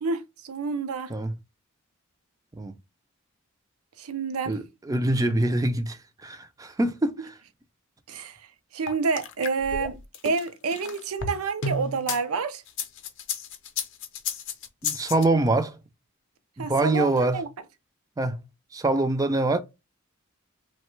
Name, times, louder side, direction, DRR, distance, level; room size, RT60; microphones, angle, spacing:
voice 1, 0.0-1.1 4.0-4.6 8.1-8.4 8.7-12.6 16.6-17.5, right 4 dB, 85° right, 0.5 m, -29 dB
voice 2, 4.5-7.4 14.8-15.8 16.6-17.4 18.2-18.4 18.7-19.6, right 2 dB, 15° right, 0.3 m, -25 dB
sound 1, 8.9-12.2 12.7-15.2, left 5 dB, 60° left, 0.5 m, -32 dB
3.1 x 2.1 x 3.0 m
head